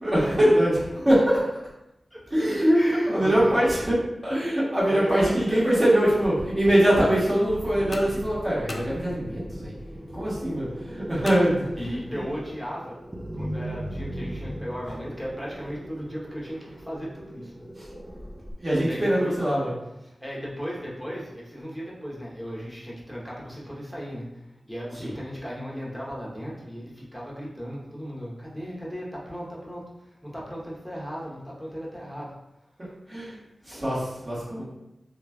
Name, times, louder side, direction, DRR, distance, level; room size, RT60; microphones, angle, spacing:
voice 1, 0.0-1.5 2.3-4.0 4.2-9.7 10.1-12.2 17.7-17.9 18.6-19.7 25.0-25.1 33.1-33.4 33.6-34.6, right 1 dB, 35° right, -9 dB, 1.5 m, -23 dB
voice 2, 2.7-3.6 4.9-5.6 8.1-8.2 11.8-13.0 13.3-17.7 18.8-19.7 20.0-32.3 33.6-33.7, equal, 5° right, -6 dB, 0.9 m, -36 dB
sound 1, 6.2-18.5, right 1 dB, 20° right, 0.5 m, -39 dB
sound 2, 7.9-9.6 11.3-12.2, left 2 dB, 50° left, 0.3 m, -39 dB
3.0 x 2.4 x 2.3 m, 0.90 s
cardioid pair, 50°, 0 cm